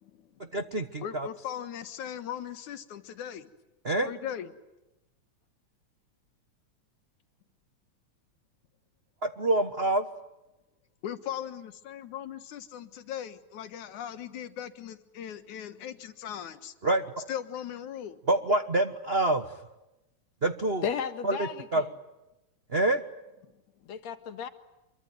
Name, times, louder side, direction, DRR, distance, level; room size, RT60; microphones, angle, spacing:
voice 1, 0.0-0.4 1.0-3.5 4.0-4.5 11.0-16.7 17.3-18.2, left 10 dB, 90° left, 3.0 m, -39 dB
voice 2, 0.5-1.3 3.8-4.1 9.2-10.1 16.8-17.0 18.3-19.5 20.4-20.8 21.2-21.8 22.7-23.0, right 2 dB, 55° right, 0.6 m, -26 dB
voice 3, 20.8-21.9 23.9-24.5, left 7 dB, 65° left, 2.9 m, -34 dB
26.5 x 23.5 x 9.4 m
omnidirectional pair, 3.3 m